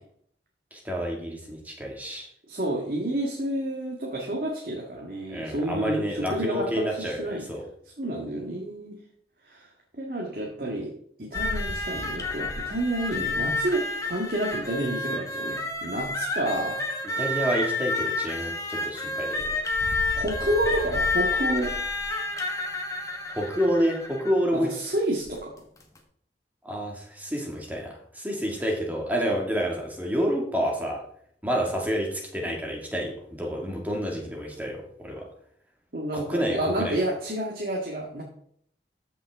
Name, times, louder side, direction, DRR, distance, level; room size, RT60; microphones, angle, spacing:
voice 1, 0.7-2.3 5.3-7.7 17.2-19.6 23.3-24.7 26.6-31.0 31.4-35.3 36.1-37.0, equal, 10° right, 0 dB, 2.0 m, -29 dB
voice 2, 2.5-7.5 8.0-9.0 9.5-9.7 10.0-10.9 11.2-16.8 20.0-21.7 24.5-25.5 35.9-38.2, right 1 dB, 55° right, -1 dB, 1.8 m, -29 dB
sound 1, 11.3-24.4 25.3-25.4 25.8-26.0, left 2 dB, 20° left, 1.4 m, -30 dB
14.0 x 6.1 x 3.6 m, 0.64 s
head